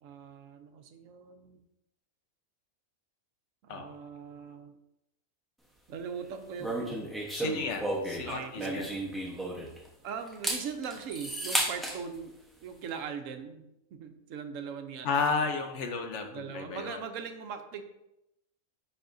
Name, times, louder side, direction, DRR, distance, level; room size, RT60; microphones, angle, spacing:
voice 1, 0.0-1.6 3.6-4.8 5.9-7.1 8.2-8.9 10.0-12.4 12.6-15.2 16.3-17.8, right 6 dB, 70° right, 7 dB, 1.0 m, -40 dB
sound 1, 6.6-9.9 10.3-12.0, right 1 dB, ahead, 0.7 m, -33 dB
voice 2, 7.3-8.9 9.6-9.7 15.0-17.0, left 4 dB, 60° left, 5 dB, 1.1 m, -33 dB
10.0 x 4.3 x 2.6 m, 0.87 s
omnidirectional pair, 1.5 m